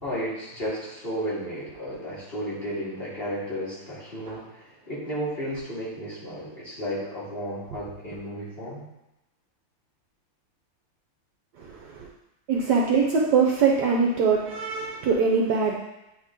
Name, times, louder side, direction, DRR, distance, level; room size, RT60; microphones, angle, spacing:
voice 1, 0.0-8.8, equal, 30° left, -9 dB, 2.0 m, -33 dB
voice 2, 11.6-12.1 12.5-15.8, right 5 dB, 70° right, -1 dB, 1.1 m, -22 dB
9.3 x 3.2 x 3.6 m, 0.95 s
omnidirectional pair, 2.2 m